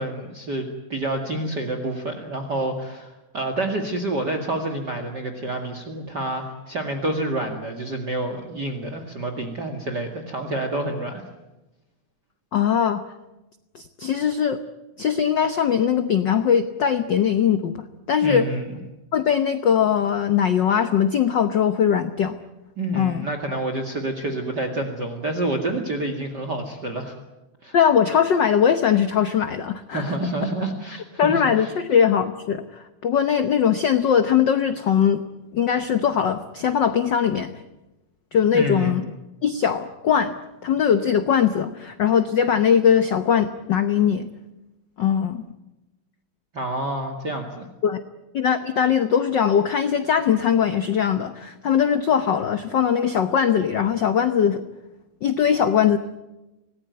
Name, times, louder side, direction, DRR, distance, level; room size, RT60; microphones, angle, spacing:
voice 1, 0.0-11.2 18.2-18.7 22.8-27.1 27.6-27.8 29.9-31.7 38.5-38.9 46.5-47.7, right 1 dB, 35° right, 5 dB, 2.4 m, -28 dB
voice 2, 12.5-13.0 13.7-14.6 15.0-18.5 19.1-22.4 22.9-23.3 27.7-30.2 31.2-35.2 35.5-37.5 38.3-39.0 39.4-40.3 40.6-44.3 45.0-45.4 47.8-48.0 48.3-54.6 55.2-56.0, left 8 dB, 80° left, 10 dB, 1.0 m, -20 dB
26.0 x 19.0 x 9.4 m, 1.0 s
omnidirectional pair, 3.4 m